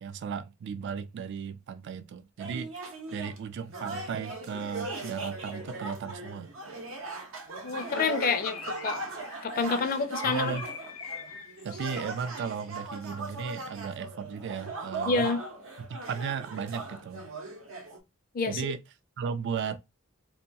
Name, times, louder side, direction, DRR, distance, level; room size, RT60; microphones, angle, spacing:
voice 1, 0.0-2.7 3.1-6.5 10.2-10.7 11.6-15.3 15.8-17.3 18.5-18.8 19.2-19.8, right 6 dB, 55° right, 0.3 m, -35 dB
sound 1, 2.4-3.4 3.7-18.0, right 3 dB, 75° right, 0.7 m, -39 dB
voice 2, 7.6-9.0 9.4-10.6 15.0-15.4 18.3-18.7, left 5 dB, 45° left, 0.4 m, -28 dB
Bird, 7.7-12.6, left 6 dB, 90° left, 0.6 m, -44 dB
2.8 x 2.2 x 2.6 m
head